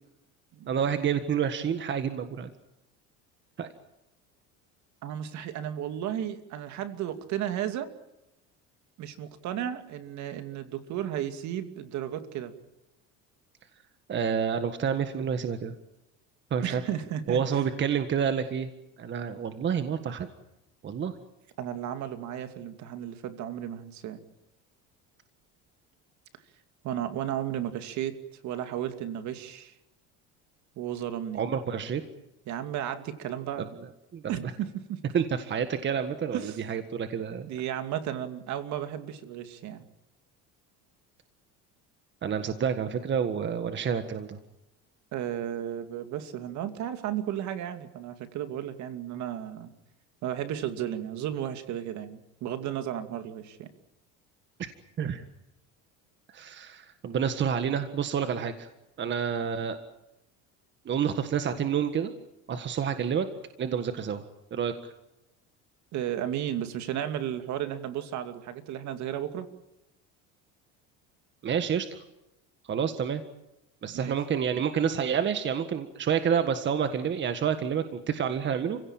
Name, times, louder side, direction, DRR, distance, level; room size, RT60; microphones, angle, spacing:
voice 1, 0.7-2.5 3.6-3.7 14.1-15.7 16.5-16.8 17.3-18.7 19.0-20.3 20.8-21.1 31.3-32.0 33.6-34.2 35.1-37.5 42.2-44.4 54.6-54.7 55.0-55.2 56.3-58.7 59.0-59.8 60.8-62.1 62.5-63.3 63.6-64.2 64.5-64.9 71.4-72.0 72.6-73.2 73.8-78.8, right 7 dB, 35° right, 9 dB, 1.7 m, -29 dB
voice 2, 5.0-7.9 9.0-12.5 16.6-17.4 21.6-24.2 26.8-28.2 28.4-29.7 30.8-31.4 32.5-33.7 34.3-35.0 36.3-36.6 37.5-39.8 45.1-49.7 50.2-53.7 65.9-69.5 73.9-74.1, right 10 dB, 60° right, 9 dB, 2.5 m, -34 dB
29.5 x 17.0 x 8.9 m, 0.92 s
cardioid pair, 130°, 33 cm